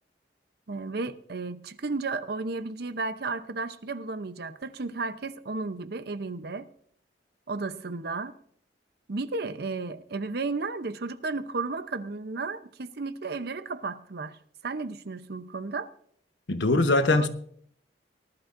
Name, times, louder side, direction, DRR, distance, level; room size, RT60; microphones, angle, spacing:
voice 1, 0.7-6.7 7.5-8.3 9.1-14.4 14.6-15.9 17.1-17.3, right 3 dB, 65° right, 0.7 m, -33 dB
voice 2, 16.5-17.3, left 2 dB, 90° left, 1.0 m, -22 dB
19.5 x 11.5 x 2.6 m
head